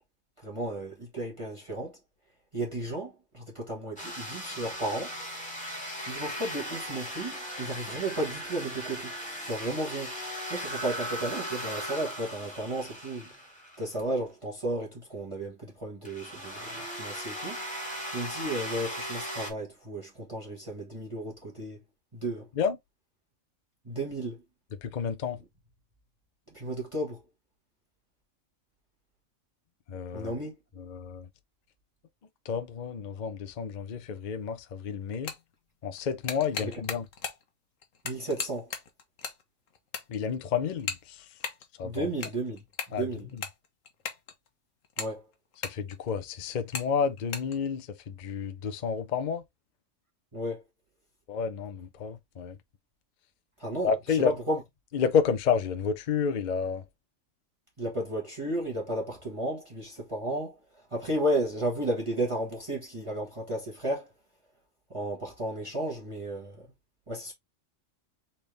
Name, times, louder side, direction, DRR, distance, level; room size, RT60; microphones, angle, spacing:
voice 1, 0.4-2.0 2.5-5.1 6.1-9.1 9.5-10.1 10.5-13.3 13.8-17.6 18.1-21.8 22.1-22.5 23.8-24.4 26.5-27.2 30.1-30.6 36.6-36.7 38.0-38.7 41.8-42.6 42.9-43.3 45.0-45.2 50.3-50.6 53.6-54.6 57.8-60.6 60.9-64.1 64.9-66.7 67.1-67.3, right 1 dB, 25° right, 1.5 m, -33 dB
sound 1, 4.0-13.8 16.0-19.5, equal, 5° left, 1.6 m, -38 dB
voice 2, 24.8-25.4 29.9-30.3 30.8-31.3 32.5-35.3 35.8-37.1 40.1-41.2 41.8-42.1 42.9-43.1 43.3-43.4 45.6-49.4 51.3-52.6 53.8-54.3 54.9-56.8, left 6 dB, 45° left, 0.6 m, -30 dB
sound 2, 34.2-34.3 35.0-35.5 36.0-37.5 37.8-39.4 39.7-40.3 40.8-41.7 42.0-44.5 44.8-46.2 46.7-46.9 47.2-47.6, left 6 dB, 70° left, 1.3 m, -37 dB
4.1 x 3.5 x 3.3 m
omnidirectional pair, 1.4 m